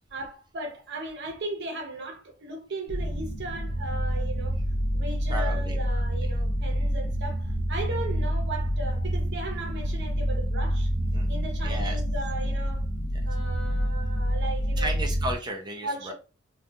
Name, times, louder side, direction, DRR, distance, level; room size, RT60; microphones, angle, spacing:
voice 1, 0.1-4.6 4.9-10.9 11.3-12.9 13.3-14.9 15.8-16.1, right 2 dB, 60° right, 0.7 m, -37 dB
sound 1, 2.9-15.3, equal, 45° left, 0.4 m, -27 dB
voice 2, 5.3-5.8 11.0-11.3 11.6-12.0 14.8-16.1, right 1 dB, 20° right, 0.4 m, -34 dB
2.3 x 2.3 x 2.7 m
head